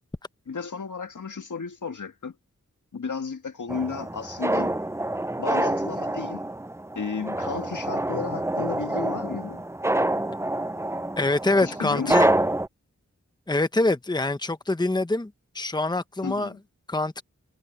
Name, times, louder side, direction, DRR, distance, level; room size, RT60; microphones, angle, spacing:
voice 1, 0.5-2.4 2.9-4.7 5.4-6.5 7.0-9.6 11.6-12.4 16.2-16.6, left 5 dB, 80° left, 1.9 m, -33 dB
sound 1, 3.7-12.7, right 1 dB, 10° right, 0.6 m, -27 dB
voice 2, 11.2-12.3 13.5-16.5 16.9-17.2, left 2 dB, 15° left, 1.0 m, -25 dB
wide cardioid pair, 65°, 30 cm